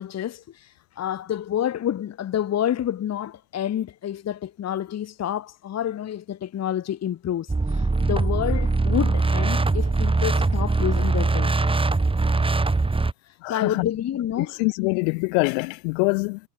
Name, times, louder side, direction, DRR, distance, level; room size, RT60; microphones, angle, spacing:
voice 1, 0.0-11.5 13.3-14.6, left 10 dB, 30° left, 2.4 m, -28 dB
sound 1, 7.5-13.1, right 3 dB, 10° right, 6.3 m, -22 dB
voice 2, 13.4-13.9 14.4-16.4, left 40 dB or more, 75° left, 6.5 m, -24 dB
cardioid pair, 145°, 50 cm